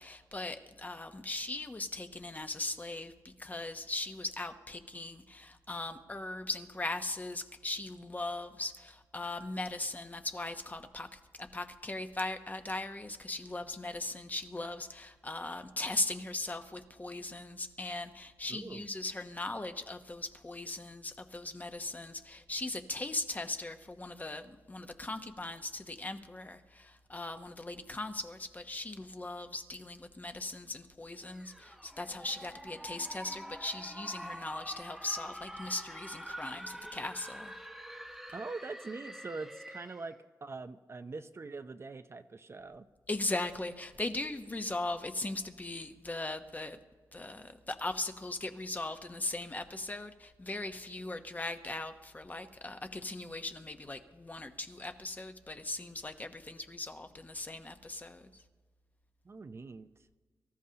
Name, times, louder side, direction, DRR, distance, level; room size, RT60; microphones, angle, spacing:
voice 1, 0.0-11.1 11.4-37.5 43.1-46.8 47.1-58.2, left 2 dB, 20° left, 7 dB, 0.9 m, -39 dB
voice 2, 18.5-18.9 38.3-40.1 40.4-42.9 59.2-59.9, right 3 dB, 35° right, 10 dB, 0.6 m, -43 dB
sound 1, 31.3-40.1, equal, 5° right, 1.1 m, -46 dB
24.0 x 14.0 x 2.9 m, 1.4 s
cardioid pair, 90°, 7 cm